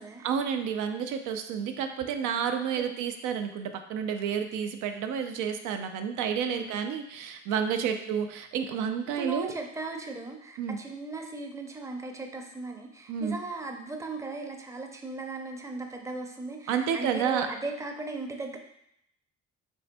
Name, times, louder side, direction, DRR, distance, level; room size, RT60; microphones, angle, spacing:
voice 1, 0.2-9.5 10.6-10.8 13.1-13.4 16.7-17.5, right 7 dB, 90° right, 6 dB, 0.5 m, -30 dB
voice 2, 6.5-6.8 7.8-8.1 9.1-18.6, right 2 dB, 10° right, 3 dB, 0.5 m, -38 dB
5.2 x 3.3 x 2.2 m, 0.76 s
cardioid pair, 90°, 30 cm